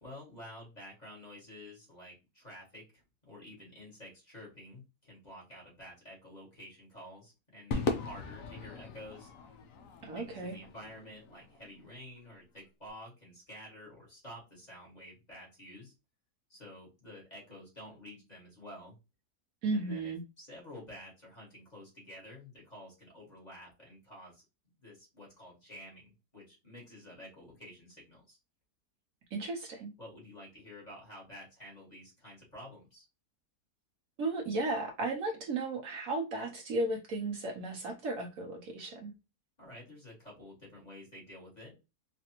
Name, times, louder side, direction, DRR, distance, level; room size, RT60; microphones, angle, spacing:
voice 1, 0.0-9.3 10.1-15.9 16.5-19.0 19.7-24.4 24.8-28.4 30.0-33.0 39.6-41.7, left 1 dB, 25° left, 1.7 m, -50 dB
Crowd / Fireworks, 7.7-12.2, left 3 dB, 65° left, 1.0 m, -39 dB
voice 2, 10.0-10.5 19.6-20.2 29.3-29.9 34.2-39.1, right 2 dB, 65° right, 1.0 m, -35 dB
4.1 x 2.6 x 2.8 m
omnidirectional pair, 1.7 m